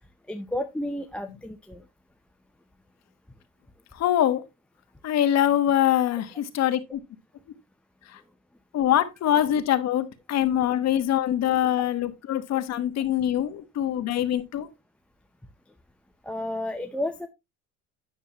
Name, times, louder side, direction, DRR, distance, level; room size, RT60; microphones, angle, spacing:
voice 1, 0.3-1.8 11.8-11.9 16.2-17.3, left 1 dB, 5° left, 0.6 m, -32 dB
voice 2, 4.0-4.4 5.0-7.0 8.7-14.7, left 11 dB, 50° left, 1.3 m, -24 dB
9.5 x 7.0 x 3.0 m
cardioid pair, 140°, 34 cm